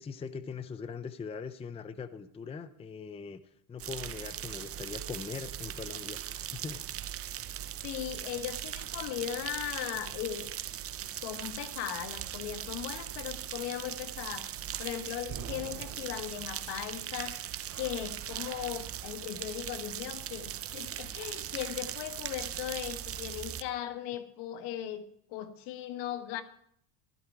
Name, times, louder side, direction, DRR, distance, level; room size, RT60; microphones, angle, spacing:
voice 1, 0.0-3.4 3.7-6.8, left 5 dB, 15° left, 13 dB, 0.5 m, -41 dB
sound 1, 3.8-23.6, right 11 dB, 35° right, 0.6 m, -39 dB
voice 2, 7.8-10.6 11.2-14.5 14.8-17.4 17.7-26.4, left 11 dB, 70° left, 8 dB, 1.6 m, -38 dB
15.0 x 13.0 x 4.6 m, 0.69 s
cardioid pair, 130°, 43 cm